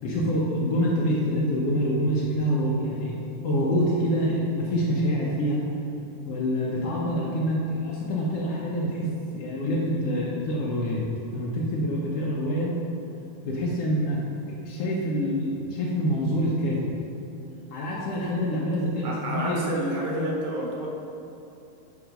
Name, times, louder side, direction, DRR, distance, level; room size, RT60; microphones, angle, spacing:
voice 1, 0.0-5.6 6.2-11.0 11.3-12.7 13.4-14.2 14.6-16.9 17.7-19.6, equal, 85° left, -5 dB, 1.3 m, -26 dB
voice 2, 19.0-20.9, right 1 dB, 75° right, -2 dB, 2.6 m, -29 dB
9.1 x 3.6 x 5.2 m, 2.8 s
omnidirectional pair, 3.9 m